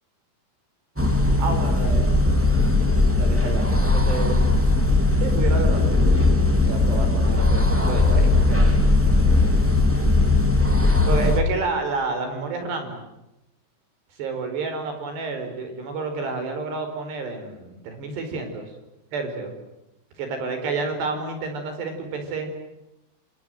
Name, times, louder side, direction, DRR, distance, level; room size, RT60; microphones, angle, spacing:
sound 1, 1.0-11.4, left 2 dB, 5° right, 1.8 m, -19 dB
voice 1, 1.4-2.6 3.2-4.5 5.2-5.9 6.6-9.3 10.6-13.0 14.2-18.6 19.1-19.5 20.2-22.5, right 4 dB, 60° right, 6 dB, 6.8 m, -30 dB
28.5 x 25.5 x 7.8 m, 0.91 s
omnidirectional pair, 5.4 m